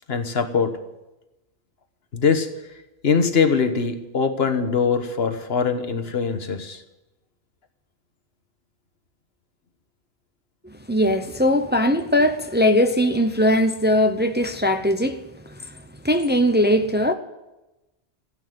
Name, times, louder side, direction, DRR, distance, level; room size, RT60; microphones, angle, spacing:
voice 1, 0.1-0.8 2.1-2.5 3.0-6.8, left 5 dB, 75° left, 1.5 m, -22 dB
voice 2, 10.9-15.2 16.0-17.1, left 1 dB, 10° right, 0.7 m, -20 dB
16.0 x 8.7 x 9.3 m
omnidirectional pair, 1.1 m